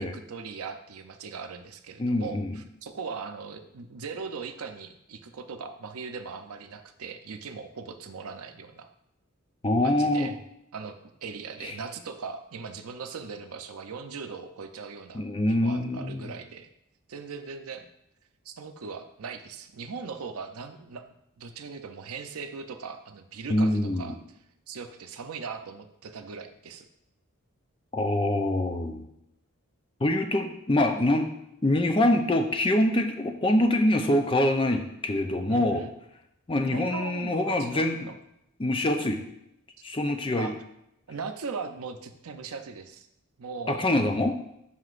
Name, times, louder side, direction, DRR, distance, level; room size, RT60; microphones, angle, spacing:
voice 1, 0.0-8.9 9.8-10.4 10.7-16.7 17.1-17.9 18.4-21.0 21.4-24.1 24.7-26.9 35.5-35.9 36.7-38.2 39.1-39.2 40.4-40.5 41.1-43.1 43.4-43.9, right 5 dB, 90° right, 7 dB, 0.6 m, -39 dB
voice 2, 2.0-2.6 9.6-10.3 11.6-11.7 15.1-16.3 23.5-24.1 27.9-29.0 30.0-31.3 31.6-35.8 36.5-38.0 38.6-39.2 39.8-40.5 43.7-44.4, left 1 dB, 25° left, 5 dB, 0.5 m, -25 dB
7.9 x 5.8 x 2.5 m, 0.80 s
head